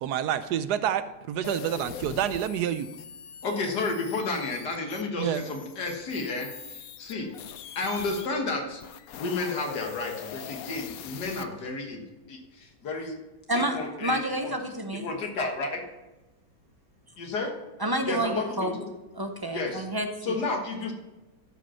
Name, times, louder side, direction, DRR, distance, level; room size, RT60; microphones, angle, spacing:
voice 1, 0.0-2.9 5.2-5.4, right 10 dB, 80° right, 13 dB, 1.2 m, -28 dB
sound 1, 1.4-8.3 8.7-11.4, left 9 dB, 70° left, 1.0 m, -42 dB
voice 2, 3.4-7.3 7.8-8.8 9.2-12.0 12.3-13.2 13.5-14.5 14.9-15.8 17.2-17.5 18.0-18.9 19.5-19.9 20.2-20.9, left 3 dB, 85° left, 2 dB, 2.1 m, -32 dB
voice 3, 13.5-15.1 17.8-18.8 19.1-20.4, right 1 dB, 30° right, 5 dB, 0.4 m, -29 dB
13.0 x 5.2 x 5.6 m, 1.0 s
omnidirectional pair, 1.7 m